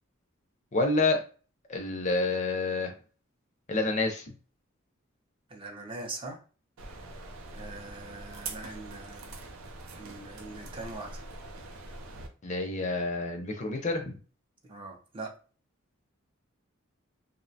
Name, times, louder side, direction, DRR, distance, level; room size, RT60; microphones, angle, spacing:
voice 1, 0.7-1.2 1.7-2.9 3.7-4.2 12.4-14.2, left 3 dB, 35° left, 4 dB, 0.4 m, -28 dB
voice 2, 5.5-6.4 6.9-7.1 7.5-9.4 10.0-11.2 14.6-15.3, right 2 dB, 25° right, 1 dB, 0.4 m, -42 dB
sound 1, 6.8-12.3, right 3 dB, 85° right, 0.5 m, -43 dB
2.6 x 2.1 x 2.7 m, 0.37 s
head